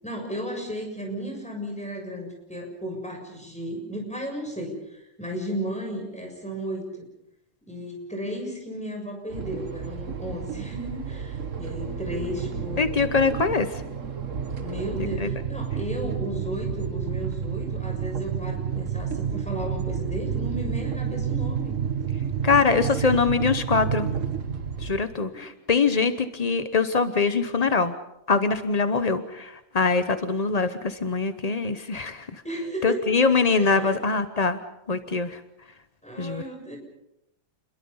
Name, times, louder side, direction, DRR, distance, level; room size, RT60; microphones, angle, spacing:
voice 1, 0.0-7.0 7.7-13.1 14.6-21.7 22.4-23.1 25.3-25.4 32.4-33.1 33.5-33.9 36.0-36.8, equal, 5° left, 1 dB, 6.9 m, -34 dB
sound 1, 9.3-25.0, right 7 dB, 40° right, 1.6 m, -30 dB
voice 2, 12.8-13.8 15.0-15.3 22.4-24.1 24.8-27.9 28.3-32.4 32.8-34.6 34.9-35.4 36.2-36.4, left 4 dB, 55° left, 10 dB, 0.4 m, -23 dB
28.5 x 22.5 x 5.6 m, 0.86 s
omnidirectional pair, 2.2 m